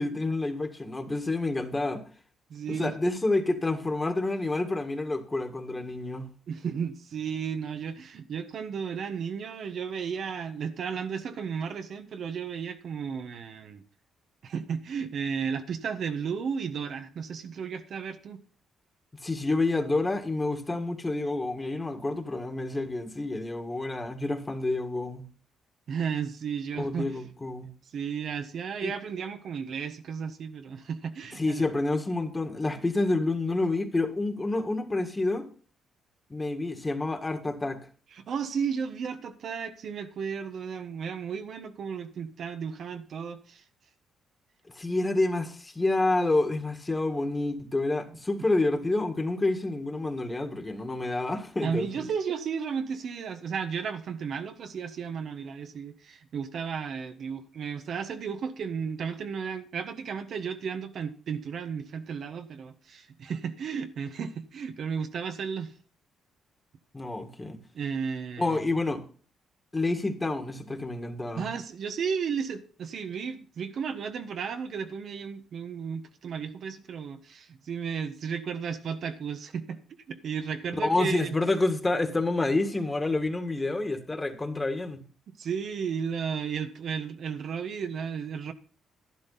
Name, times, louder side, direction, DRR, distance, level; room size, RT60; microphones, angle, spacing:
voice 1, 0.0-2.0 2.7-6.3 19.2-25.3 26.8-27.7 28.8-28.9 31.4-35.5 36.3-37.8 44.8-52.1 66.9-67.6 68.4-69.0 69.7-71.5 80.8-85.0, left 2 dB, 20° left, 1.9 m, -28 dB
voice 2, 2.5-3.0 6.5-13.8 14.4-18.4 25.9-27.2 27.9-31.6 38.1-43.6 51.6-65.7 67.7-68.7 71.3-79.8 80.1-81.4 85.4-88.5, right 6 dB, 60° right, 1.2 m, -34 dB
11.5 x 11.5 x 4.1 m
cardioid pair, 90°, 0 cm